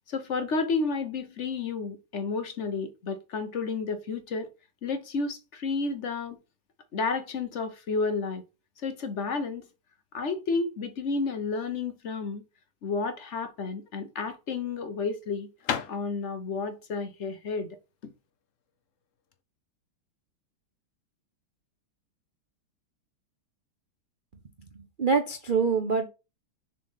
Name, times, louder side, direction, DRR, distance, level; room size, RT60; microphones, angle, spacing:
voice 1, 0.1-4.5 4.8-6.4 6.9-8.4 8.8-9.7 10.1-12.4 12.8-15.5 15.9-17.7, left 4 dB, 45° left, 1.1 m, -31 dB
sound 1, 13.8-19.4, left 8 dB, 60° left, 0.8 m, -38 dB
voice 2, 24.7-26.1, right 5 dB, 60° right, 0.5 m, -25 dB
7.0 x 4.3 x 5.6 m
omnidirectional pair, 2.2 m